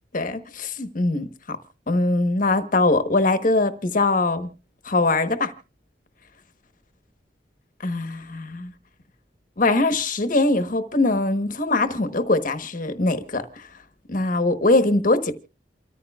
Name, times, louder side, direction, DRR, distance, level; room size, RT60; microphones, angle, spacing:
voice 1, 0.1-1.6 1.9-4.5 4.8-5.5 7.8-8.7 9.6-13.4 14.1-15.3, left 2 dB, 50° left, 1.2 m, -22 dB
28.5 x 14.0 x 2.3 m
head